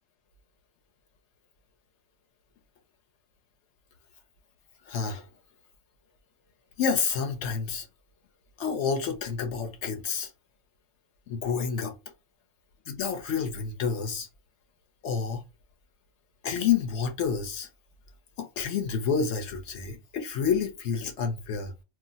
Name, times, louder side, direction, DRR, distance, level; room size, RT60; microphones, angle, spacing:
voice 1, 4.9-5.2 6.8-7.9 8.6-10.3 11.3-11.9 12.9-14.3 15.0-15.4 16.4-17.7 18.4-21.7, left 6 dB, 65° left, 0.8 m, -29 dB
2.4 x 2.0 x 3.8 m
omnidirectional pair, 1.5 m